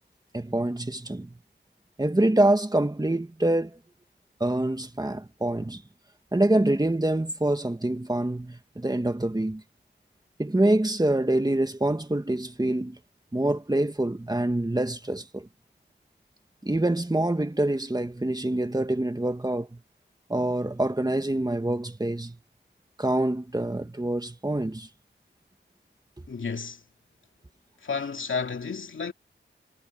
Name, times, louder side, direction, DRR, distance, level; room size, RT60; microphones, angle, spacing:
voice 1, 0.3-1.3 2.0-3.8 4.4-5.8 6.3-9.6 10.4-13.0 13.3-15.5 16.6-19.8 20.3-22.4 23.0-24.9, right 1 dB, 20° right, 1.8 m, -25 dB
voice 2, 26.3-26.8 27.8-29.1, left 5 dB, 90° left, 2.5 m, -31 dB
wide cardioid pair, 80°, 20 cm